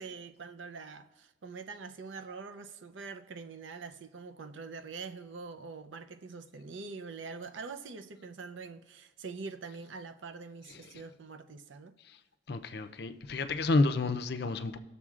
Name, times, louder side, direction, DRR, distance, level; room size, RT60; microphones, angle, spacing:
voice 1, 0.0-12.0, right 4 dB, 80° right, 0.6 m, -44 dB
voice 2, 12.5-14.8, left 3 dB, 55° left, 0.5 m, -30 dB
20.0 x 6.8 x 2.4 m
head